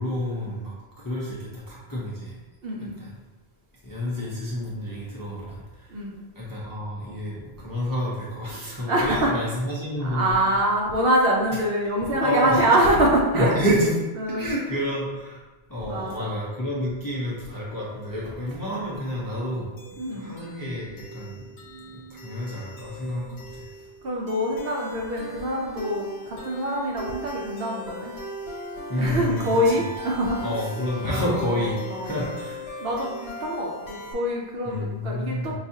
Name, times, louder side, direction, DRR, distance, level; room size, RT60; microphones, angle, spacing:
voice 1, 0.0-2.4 2.8-3.1 3.8-5.9 6.4-10.4 12.2-12.7 13.3-13.9 14.3-15.4 15.7-19.7 20.1-21.4 21.9-23.7 28.9-29.6 30.4-32.6 34.7-35.5, equal, 25° left, -6 dB, 0.5 m, -29 dB
voice 2, 2.6-2.9 5.9-6.1 8.9-9.3 10.0-13.5 14.2-14.5 15.9-16.3 20.0-20.3 23.1-23.4 24.0-28.2 29.0-30.6 31.0-31.6 31.9-32.1 32.8-35.5, right 1 dB, 70° right, -2 dB, 0.8 m, -25 dB
sound 1, 19.8-34.1, left 1 dB, 75° left, 1.1 m, -39 dB
4.7 x 2.4 x 2.7 m, 1.2 s
omnidirectional pair, 1.1 m